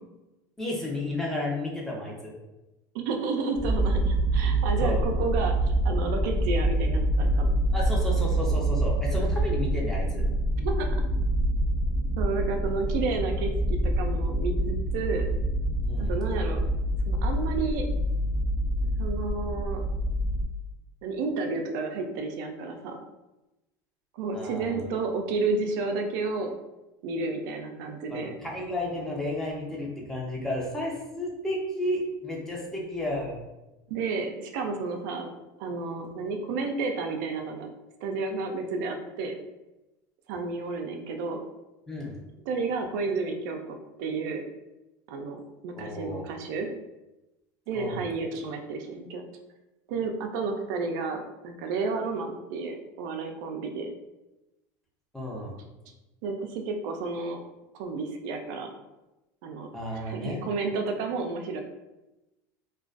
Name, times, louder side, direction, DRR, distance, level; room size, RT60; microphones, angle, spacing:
voice 1, 0.6-2.3 4.8-5.0 7.7-10.3 15.8-16.1 24.3-24.8 28.1-33.4 41.9-42.2 45.8-46.2 47.7-48.0 55.1-55.5 59.7-60.5, left 1 dB, 5° left, -3 dB, 0.6 m, -32 dB
voice 2, 2.9-7.5 10.6-10.9 12.2-15.3 16.1-16.6 17.1-17.9 19.0-19.8 21.0-23.0 24.1-26.5 27.0-28.3 33.9-35.3 35.6-37.7 38.0-39.3 40.3-41.4 42.5-44.4 45.1-46.7 47.7-49.2 49.9-53.9 56.2-57.4 57.8-58.7 59.4-61.6, right 4 dB, 75° right, 4 dB, 0.3 m, -31 dB
sound 1, 3.6-20.5, right 1 dB, 50° left, 0.8 m, -26 dB
2.3 x 2.2 x 2.4 m, 1.0 s
supercardioid pair, 120°, 10 cm